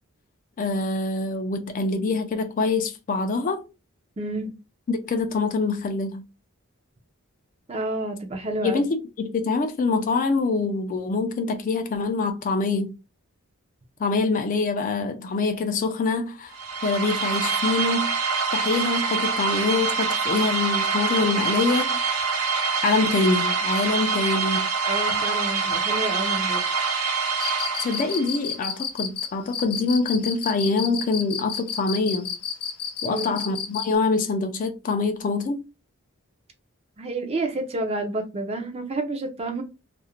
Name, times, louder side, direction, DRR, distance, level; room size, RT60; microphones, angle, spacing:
voice 1, 0.6-3.6 4.9-6.3 8.6-12.9 14.0-16.6 16.8-18.1 18.5-22.0 22.8-24.7 27.8-32.3 33.0-35.6, left 3 dB, 35° left, 0.3 m, -25 dB
voice 2, 4.2-4.5 7.7-8.8 24.8-26.6 33.0-33.4 37.0-39.6, right 2 dB, 25° right, 0.4 m, -29 dB
sound 1, 16.5-28.4, right 5 dB, 85° right, 0.7 m, -25 dB
Cricket, 27.3-33.9, left 8 dB, 90° left, 0.5 m, -31 dB
2.4 x 2.1 x 2.8 m
head